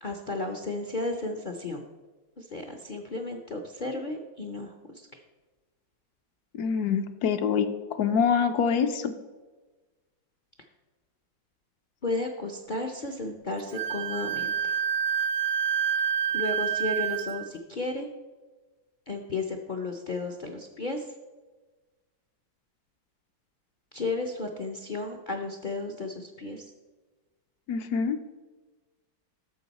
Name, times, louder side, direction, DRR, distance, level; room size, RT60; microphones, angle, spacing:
voice 1, 0.0-1.8 2.4-5.2 12.0-14.8 16.3-18.1 19.1-21.1 23.9-26.7, left 2 dB, 55° left, 3 dB, 0.5 m, -33 dB
voice 2, 6.6-9.1 27.7-28.2, left 6 dB, 75° left, 7 dB, 1.1 m, -25 dB
Wind instrument woodwind instrument, 13.7-17.4, right 8 dB, 65° right, 0.8 m, -28 dB
11.5 x 7.0 x 4.1 m, 1.2 s
omnidirectional pair, 1.8 m